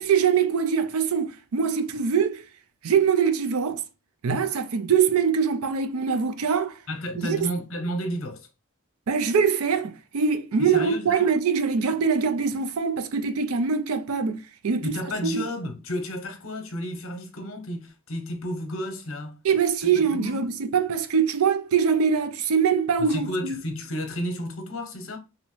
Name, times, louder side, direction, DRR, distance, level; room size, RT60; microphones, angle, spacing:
voice 1, 0.0-2.4 2.8-3.8 4.2-6.8 7.2-7.5 9.1-15.0 15.2-15.5 19.4-23.6, right 6 dB, 80° right, 0.5 m, -23 dB
voice 2, 6.9-8.5 10.6-11.3 14.8-19.4 20.1-20.5 23.0-25.2, equal, 65° left, 0.8 m, -32 dB
3.0 x 2.7 x 3.0 m
head